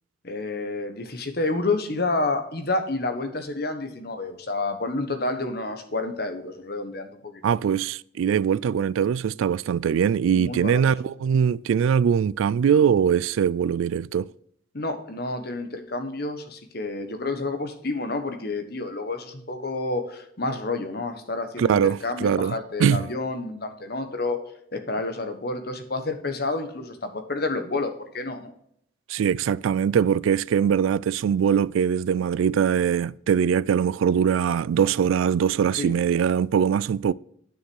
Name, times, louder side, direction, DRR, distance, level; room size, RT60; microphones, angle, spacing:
voice 1, 0.2-7.4 10.3-10.8 14.7-24.4 24.7-28.5 35.8-35.9, left 2 dB, 50° left, 1.3 m, -29 dB
voice 2, 7.4-14.3 21.6-22.5 22.8-23.1 29.1-37.1, right 7 dB, 85° right, 0.3 m, -22 dB
9.1 x 6.5 x 4.7 m
head